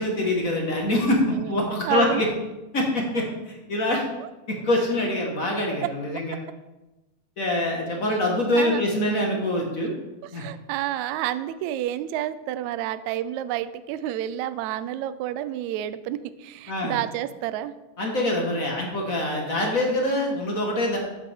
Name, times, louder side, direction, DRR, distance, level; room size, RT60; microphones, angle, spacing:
voice 1, 0.0-2.3 2.7-4.0 4.5-6.3 7.4-9.9 10.3-10.5 16.7-16.9 18.0-21.0, left 1 dB, 45° left, -1 dB, 1.1 m, -25 dB
voice 2, 1.8-2.2 3.9-4.3 5.8-5.9 8.5-8.8 9.8-9.9 10.2-17.7, right 12 dB, 85° right, 13 dB, 1.6 m, -30 dB
13.5 x 7.9 x 3.6 m, 1.0 s
omnidirectional pair, 3.8 m